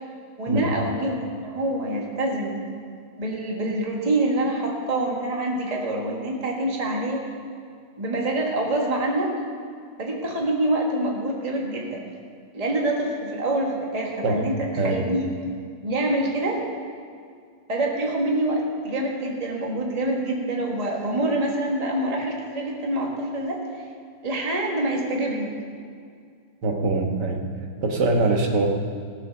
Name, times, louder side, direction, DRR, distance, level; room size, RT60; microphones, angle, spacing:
voice 1, 0.4-2.6 3.2-7.2 8.0-9.3 10.0-12.1 12.5-15.3 15.8-16.6 17.7-23.6 24.2-25.5, right 1 dB, 20° right, -1 dB, 1.6 m, -26 dB
voice 2, 14.8-15.1 26.6-27.4 27.8-28.7, right 3 dB, 65° right, 2 dB, 1.9 m, -23 dB
16.0 x 7.5 x 6.5 m, 2.2 s
omnidirectional pair, 2.0 m